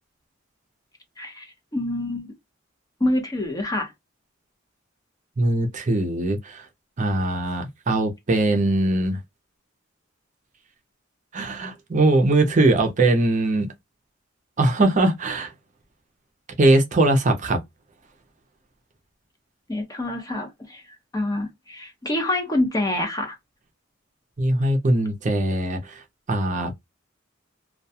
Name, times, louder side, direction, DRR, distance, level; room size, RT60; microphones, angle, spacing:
voice 1, 1.2-2.3 3.0-3.9 19.7-20.8 21.1-23.4, left 1 dB, 20° left, 0.8 m, -26 dB
voice 2, 5.4-6.7 7.0-9.2 11.3-13.7 14.6-15.5 16.6-17.6 24.4-26.0 26.3-26.7, right 2 dB, 40° right, 0.6 m, -21 dB
2.3 x 2.1 x 2.7 m
head